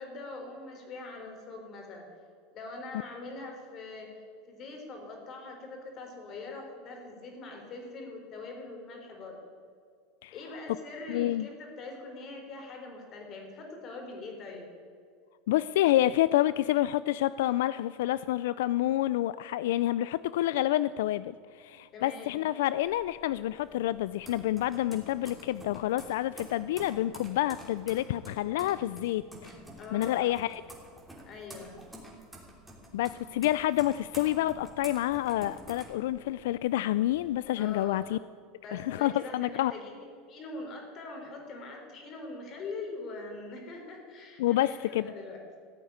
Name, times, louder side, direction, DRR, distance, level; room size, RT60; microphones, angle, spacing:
voice 1, 0.0-2.1 2.5-4.1 4.5-9.4 10.3-14.7 21.9-22.3 29.8-30.4 31.3-31.8 37.5-38.0 38.6-45.4, left 3 dB, 35° left, 2 dB, 3.9 m, -43 dB
voice 2, 11.1-11.5 15.5-29.5 29.9-30.6 32.9-38.2 38.7-39.7 44.4-45.1, left 14 dB, 80° left, 16 dB, 0.3 m, -28 dB
sound 1, 22.8-36.6 37.0-37.8, right 1 dB, 5° right, 3.0 m, -49 dB
15.0 x 8.5 x 9.5 m, 2.2 s
supercardioid pair, 140°, 0 cm